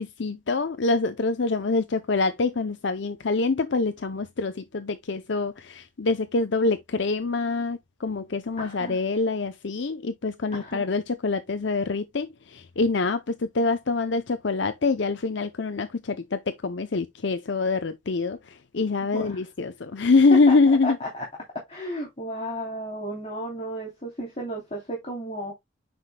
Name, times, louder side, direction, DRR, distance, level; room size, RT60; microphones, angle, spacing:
voice 1, 0.0-21.0, left 3 dB, 65° left, 0.6 m, -25 dB
voice 2, 8.6-9.0 10.5-10.9 19.0-19.4 20.3-20.6 20.8-21.2 21.5-25.5, equal, 30° left, 3.1 m, -33 dB
9.4 x 5.9 x 2.2 m
head